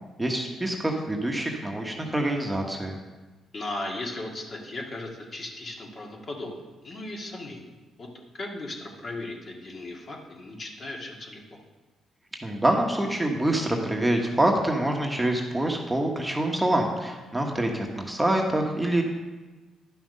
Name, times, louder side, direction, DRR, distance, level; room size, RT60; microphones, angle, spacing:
voice 1, 0.2-2.9 12.4-19.0, right 1 dB, 10° right, 1 dB, 1.2 m, -26 dB
voice 2, 3.5-7.7 8.0-11.6, left 2 dB, 40° left, 0 dB, 1.9 m, -37 dB
11.0 x 5.8 x 5.4 m, 1.2 s
cardioid pair, 90°, 0 cm